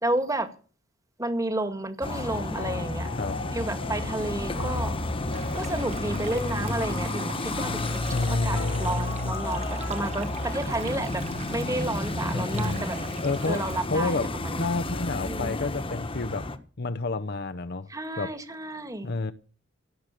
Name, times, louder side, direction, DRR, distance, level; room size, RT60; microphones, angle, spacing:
voice 1, 0.0-0.5 1.2-3.1 3.5-4.9 5.5-11.2 11.5-13.0 13.5-14.7 15.3-15.7 17.9-19.1, right 1 dB, 15° right, 2.0 m, -31 dB
sound 1, 2.0-16.6, left 2 dB, 25° left, 1.4 m, -31 dB
sound 2, 2.1-10.0, left 4 dB, 85° left, 1.9 m, -41 dB
sound 3, 5.3-13.8, right 5 dB, 35° right, 1.8 m, -43 dB
voice 2, 8.1-9.4 12.3-12.8 13.2-16.5 16.8-17.9 18.2-18.3 19.0-19.3, left 3 dB, 55° left, 0.8 m, -30 dB
17.0 x 8.1 x 7.6 m
head